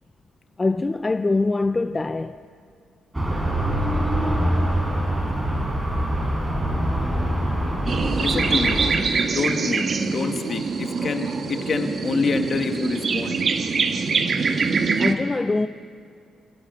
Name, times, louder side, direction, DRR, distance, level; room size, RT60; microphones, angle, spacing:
voice 1, 0.6-2.4 15.0-15.7, left 3 dB, 20° left, 0.5 m, -23 dB
sound 1, 3.1-8.9, right 1 dB, 15° right, 4.6 m, -24 dB
sound 2, 7.9-15.1, right 4 dB, 45° right, 1.5 m, -24 dB
voice 2, 8.2-8.8 9.3-13.4, left 4 dB, 45° left, 2.0 m, -27 dB
27.0 x 16.5 x 8.0 m
cardioid pair, 90°, 0 cm